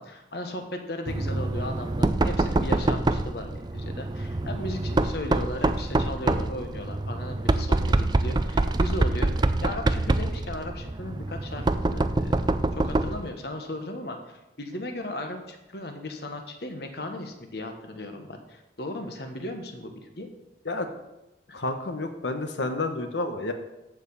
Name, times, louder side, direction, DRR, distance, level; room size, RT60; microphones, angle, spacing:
voice 1, 0.0-12.4 12.7-20.3 21.5-21.6, left 1 dB, 60° left, 5 dB, 1.3 m, -36 dB
Knock, 1.1-13.3, right 2 dB, 25° right, 0.4 m, -25 dB
voice 2, 21.5-23.5, left 2 dB, 75° left, 7 dB, 1.1 m, -30 dB
14.0 x 4.9 x 5.5 m, 0.98 s
head